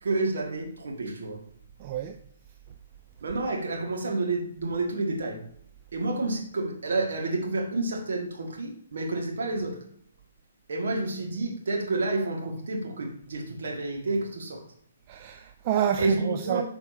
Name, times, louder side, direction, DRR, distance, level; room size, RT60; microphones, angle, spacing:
voice 1, 0.0-1.4 3.2-5.4 5.9-9.8 10.7-14.6 16.0-16.6, right 2 dB, 60° right, 1.7 m, -29 dB
voice 2, 1.8-2.1 15.1-16.6, right 9 dB, 35° right, 0.4 m, -28 dB
9.0 x 5.2 x 2.7 m
figure-of-eight pair, 125°, 0 cm